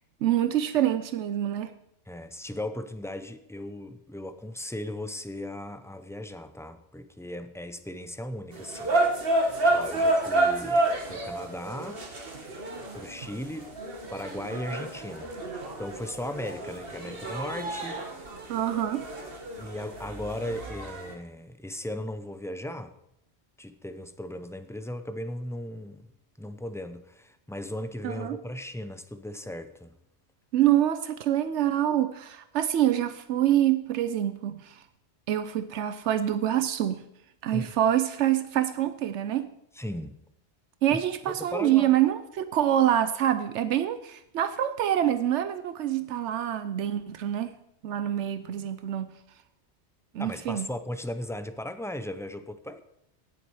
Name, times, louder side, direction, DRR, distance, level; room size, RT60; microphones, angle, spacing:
voice 1, 0.2-1.7 18.5-19.0 28.0-28.4 30.5-34.8 35.3-37.0 37.4-39.5 40.8-47.5 47.8-49.1 50.1-50.7, right 11 dB, 85° right, 11 dB, 0.9 m, -26 dB
voice 2, 2.1-9.0 9.7-12.1 12.9-13.8 14.1-15.3 15.8-18.0 19.6-22.9 23.6-26.1 26.4-29.9 37.5-37.7 39.8-40.1 40.9-41.0 41.4-41.9 50.2-52.8, left 1 dB, 5° left, 10 dB, 0.4 m, -37 dB
sound 1, 8.5-21.1, right 2 dB, 55° right, 1.8 m, -30 dB
17.5 x 7.2 x 4.8 m, 0.78 s
omnidirectional pair, 1.2 m